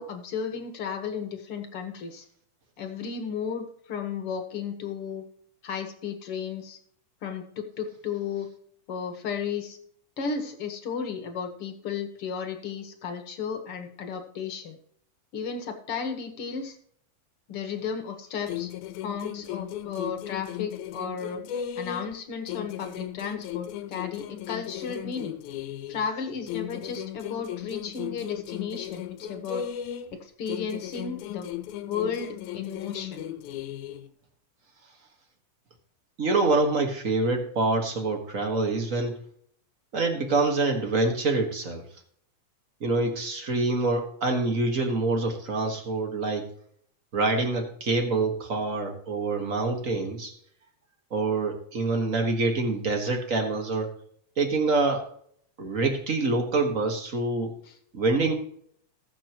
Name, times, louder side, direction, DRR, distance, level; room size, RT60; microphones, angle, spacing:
voice 1, 0.0-2.3 2.8-5.2 5.6-6.8 7.2-8.5 8.9-9.8 10.2-14.8 15.3-16.8 17.5-18.7 19.0-21.4 21.8-25.3 25.9-29.7 30.2-31.5 31.9-33.2, left 6 dB, 55° left, 5 dB, 2.0 m, -34 dB
sound 1, 18.5-22.2 22.5-26.1 26.5-30.2 30.5-34.1, left 11 dB, 85° left, 2.2 m, -36 dB
voice 2, 36.2-39.2 39.9-41.8 42.8-46.5 47.1-50.3 51.1-53.9 54.4-55.1 55.6-57.6 57.9-58.3, right 3 dB, 35° right, 4 dB, 1.3 m, -26 dB
20.0 x 7.0 x 3.0 m, 0.63 s
omnidirectional pair, 3.5 m